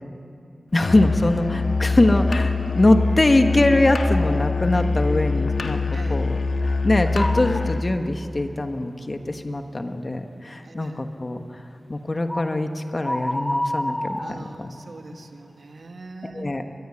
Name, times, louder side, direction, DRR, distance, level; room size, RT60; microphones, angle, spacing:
voice 1, 0.7-5.8 6.1-11.6 11.9-14.7 16.2-16.6, left 2 dB, 30° left, 6 dB, 1.4 m, -22 dB
Musical instrument, 0.8-7.9, left 3 dB, 70° left, 1.6 m, -24 dB
sound 1, 7.2-7.7 8.2-8.3 12.3-12.6 13.0-14.9, left 1 dB, 10° left, 0.9 m, -28 dB
voice 2, 10.6-11.1 14.2-16.6, right 3 dB, 60° right, 5 dB, 2.0 m, -41 dB
25.0 x 21.0 x 9.8 m, 2.6 s
wide cardioid pair, 115°, 0 cm